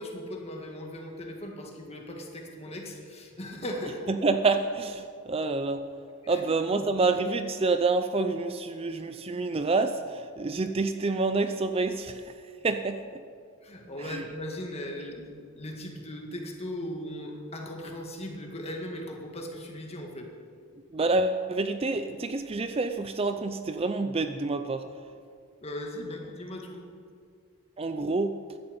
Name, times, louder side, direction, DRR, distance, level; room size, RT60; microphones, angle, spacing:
voice 1, 0.0-4.1 6.2-6.4 6.7-6.9 13.6-20.3 25.6-26.8, left 1 dB, 30° left, 1 dB, 1.9 m, -38 dB
voice 2, 4.1-5.8 6.3-12.3 12.6-13.2 14.0-14.2 20.9-24.8 27.8-28.4, right 3 dB, 25° right, 9 dB, 0.4 m, -27 dB
15.5 x 11.0 x 5.3 m, 2.2 s
head